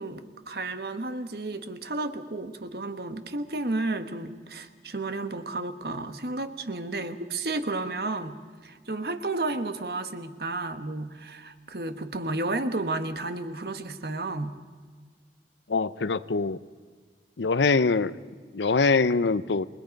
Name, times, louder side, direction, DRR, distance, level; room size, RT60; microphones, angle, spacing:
voice 1, 0.0-8.4 8.6-14.6, right 2 dB, 60° right, 9 dB, 1.3 m, -32 dB
voice 2, 15.7-16.6 17.4-18.1 18.5-19.6, left 4 dB, 90° left, 16 dB, 0.7 m, -23 dB
29.0 x 21.0 x 5.3 m, 1.5 s
head